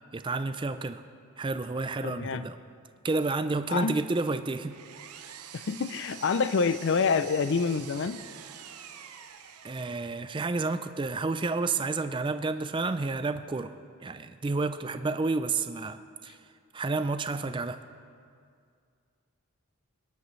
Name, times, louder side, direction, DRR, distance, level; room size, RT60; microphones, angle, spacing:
voice 1, 0.1-1.0 1.4-2.6 3.0-4.8 9.6-13.7 14.0-16.4 16.7-17.8, right 3 dB, 20° right, 11 dB, 0.3 m, -30 dB
voice 2, 2.0-2.4 3.7-4.0 5.5-8.2, left 5 dB, 55° left, 14 dB, 0.4 m, -27 dB
Power tool, 4.3-10.4, right 9 dB, 90° right, 0.7 m, -46 dB
21.5 x 10.5 x 3.2 m, 2.2 s
head